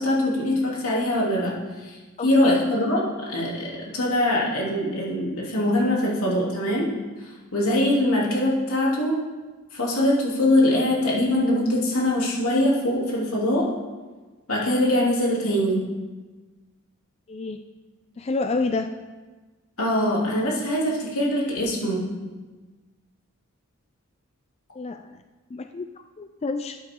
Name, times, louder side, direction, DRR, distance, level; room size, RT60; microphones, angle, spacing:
voice 1, 0.0-2.0 2.2-6.9 7.5-9.2 9.7-13.7 14.5-15.8 19.8-22.0, left 1 dB, 85° left, -4 dB, 3.1 m, -23 dB
voice 2, 2.2-2.6 17.3-17.6 18.2-18.9 24.8-25.0 25.5-26.8, left 3 dB, 30° left, 7 dB, 0.3 m, -29 dB
12.0 x 8.7 x 3.8 m, 1.3 s
head